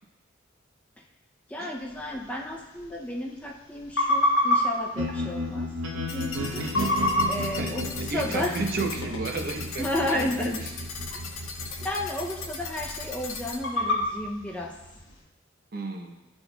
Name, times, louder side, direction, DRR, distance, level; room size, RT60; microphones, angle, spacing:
voice 1, 1.5-5.7 5.9-6.6 7.3-8.6 9.8-10.6 11.1-11.2 11.8-14.7, left 1 dB, 5° left, -2 dB, 0.5 m, -32 dB
sound 1, 1.8-15.2, left 1 dB, 65° left, 1.2 m, -31 dB
sound 2, 4.9-15.0, equal, 85° right, 0.8 m, -35 dB
sound 3, 6.1-13.6, left 4 dB, 90° left, 0.7 m, -39 dB
voice 2, 8.1-10.7 11.6-11.9 15.7-16.2, right 3 dB, 50° right, 3 dB, 0.7 m, -33 dB
11.5 x 4.3 x 2.2 m, 1.0 s
head